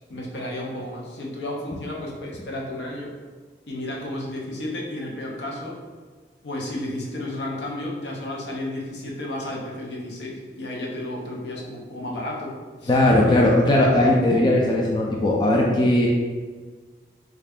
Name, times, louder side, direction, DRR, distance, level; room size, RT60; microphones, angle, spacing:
voice 1, 0.1-3.1 3.7-5.8 6.4-13.0, left 1 dB, 80° left, -2 dB, 0.7 m, -32 dB
voice 2, 12.9-16.1, left 1 dB, 25° left, -2 dB, 0.3 m, -18 dB
3.2 x 2.4 x 3.5 m, 1.4 s
head